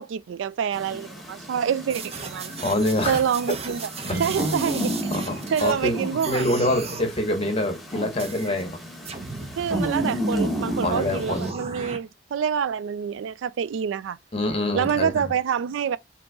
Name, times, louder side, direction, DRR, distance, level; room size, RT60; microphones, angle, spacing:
voice 1, 0.0-2.5 3.1-3.9 4.2-5.0 5.5-6.5 9.6-14.2 14.7-16.0, right 7 dB, 80° right, 0.3 m, -26 dB
sound 1, 0.7-11.5, equal, ahead, 1.1 m, -32 dB
sound 2, 1.9-5.9 6.2-7.1 8.2-8.6 9.1-12.0, right 4 dB, 35° right, 0.6 m, -36 dB
voice 2, 2.6-3.2 5.1-6.0 6.3-8.8 10.8-11.5 14.3-15.2, left 1 dB, 30° left, 0.9 m, -25 dB
sound 3, 4.0-7.7, right 2 dB, 55° right, 1.2 m, -39 dB
3.8 x 2.9 x 3.5 m
head